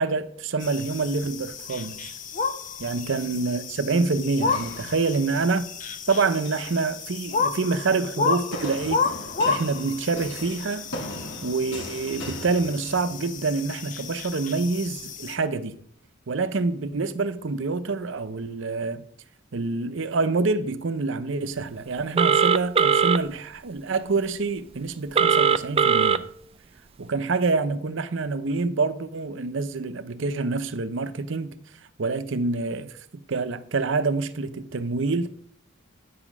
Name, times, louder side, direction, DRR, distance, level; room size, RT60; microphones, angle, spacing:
voice 1, 0.0-2.1 2.8-5.7 6.1-9.1 9.4-10.9 11.4-15.7 16.3-19.0 19.5-26.2 27.0-31.5 32.0-35.3, right 3 dB, 65° right, 0.6 m, -26 dB
sound 1, 0.6-15.4, left 5 dB, 40° left, 0.6 m, -32 dB
sound 2, 4.5-5.6 6.3-6.8 8.5-13.4, left 1 dB, 60° left, 1.9 m, -39 dB
Telephone, 22.2-23.2 25.2-26.2, right 6 dB, 30° right, 0.3 m, -19 dB
10.0 x 4.9 x 6.0 m
head